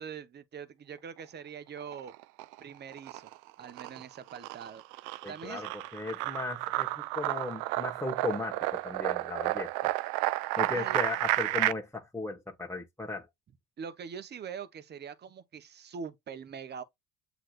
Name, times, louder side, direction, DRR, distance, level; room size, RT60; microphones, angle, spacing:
voice 1, 0.0-2.1 2.6-3.3 3.6-4.8 5.3-5.7 10.7-11.0 13.8-16.8, right 7 dB, 30° right, 0.9 m, -43 dB
sound 1, 1.8-2.6 2.9-11.7, right 18 dB, 65° right, 0.5 m, -32 dB
voice 2, 5.2-9.9 10.6-13.3, left 3 dB, 5° left, 1.3 m, -36 dB
7.5 x 2.9 x 2.4 m
supercardioid pair, 85°, 33 cm